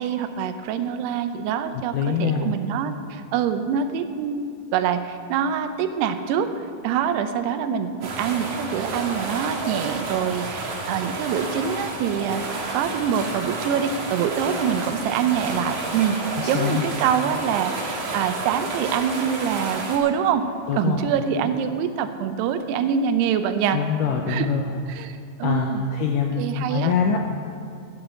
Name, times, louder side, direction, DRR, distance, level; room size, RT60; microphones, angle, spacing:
voice 1, 0.0-16.2 16.5-20.5 20.7-23.8 24.3-24.5 24.9-25.8 26.4-26.9, right 8 dB, 85° right, 9 dB, 2.8 m, -25 dB
voice 2, 1.9-2.6 16.4-16.8 20.7-21.1 23.7-24.8 25.4-27.4, left 6 dB, 80° left, 2 dB, 1.9 m, -24 dB
sound 1, 8.0-20.0, right 3 dB, 55° right, 2.7 m, -31 dB
10.0 x 8.8 x 7.8 m, 2.5 s
omnidirectional pair, 4.6 m